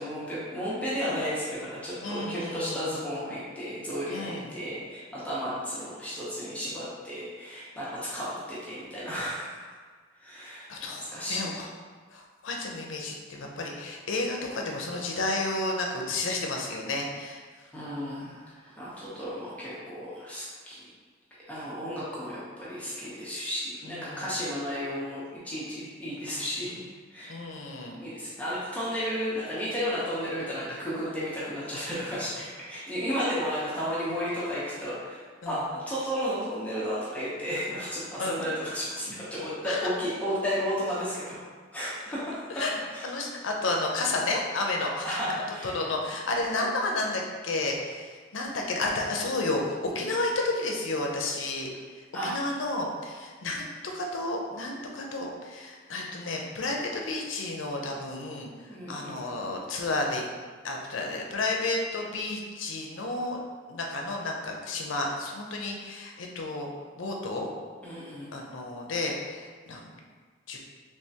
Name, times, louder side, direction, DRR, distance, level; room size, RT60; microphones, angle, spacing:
voice 1, 0.0-9.7 10.2-10.7 11.1-11.5 17.7-20.9 21.5-26.8 27.1-27.4 27.9-41.4 41.7-42.4 42.9-43.0 45.0-45.8 52.1-52.4 58.7-59.2 67.8-68.3, equal, 5° left, -9 dB, 0.7 m, -33 dB
voice 2, 2.0-2.8 4.1-4.5 10.7-11.7 12.1-17.4 23.8-24.3 27.3-28.0 35.4-35.7 38.2-38.4 39.7-39.8 42.6-42.8 43.0-51.7 52.2-60.2 60.6-63.4 63.7-66.7 67.0-67.5 68.3-69.9 70.5-70.6, left 2 dB, 80° left, 0 dB, 0.6 m, -31 dB
3.4 x 3.2 x 2.8 m, 1.5 s
head